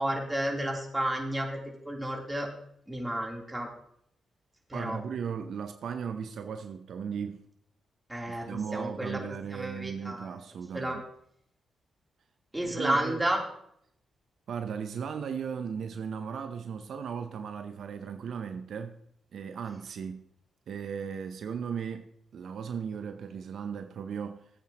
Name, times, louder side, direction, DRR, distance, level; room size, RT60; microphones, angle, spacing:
voice 1, 0.0-2.5 2.9-3.7 4.7-5.0 8.1-8.5 8.7-9.2 9.5-10.4 10.7-11.0 12.5-13.4, right 1 dB, 15° right, 3.3 m, -31 dB
voice 2, 4.7-7.4 8.3-11.0 12.6-13.2 14.5-19.0 19.3-20.3 20.7-24.5, right 7 dB, 70° right, 0.7 m, -36 dB
16.5 x 8.4 x 3.0 m
supercardioid pair, 45°, 0 cm